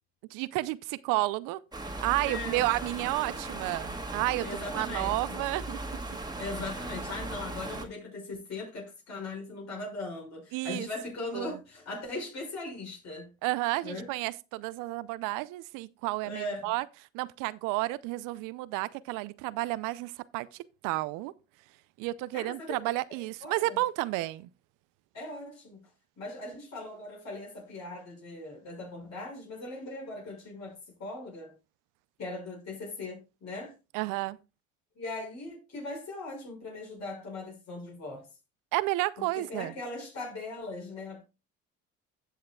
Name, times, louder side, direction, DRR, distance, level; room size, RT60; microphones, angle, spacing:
voice 1, 0.3-1.6 2.0-5.8 10.5-10.9 11.3-11.6 13.4-16.8 17.1-20.5 20.8-21.3 22.0-24.5 33.9-34.4 38.7-39.7, right 19 dB, 80° right, 0.6 m, -31 dB
sound 1, 1.7-7.9, right 2 dB, 15° right, 1.9 m, -38 dB
voice 2, 2.2-2.7 4.4-5.4 6.4-13.3 13.8-14.1 16.2-16.7 22.3-22.7 23.4-23.8 25.1-25.9 26.2-31.5 32.2-33.7 35.0-38.3 39.2-41.2, left 2 dB, 60° left, 6.0 m, -39 dB
17.0 x 6.5 x 2.3 m
supercardioid pair, 70°, 31 cm